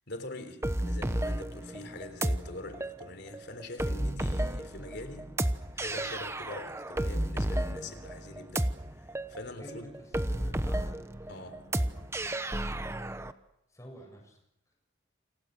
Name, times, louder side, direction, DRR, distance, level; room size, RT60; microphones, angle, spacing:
voice 1, 0.1-5.4 5.7-9.9 11.3-11.8, left 2 dB, 55° left, 3.7 m, -44 dB
sound 1, 0.6-13.3, right 1 dB, 15° right, 1.0 m, -32 dB
voice 2, 9.6-11.3 11.7-12.4 12.7-13.0 13.7-14.4, equal, 15° left, 7.4 m, -50 dB
29.0 x 28.0 x 6.7 m
head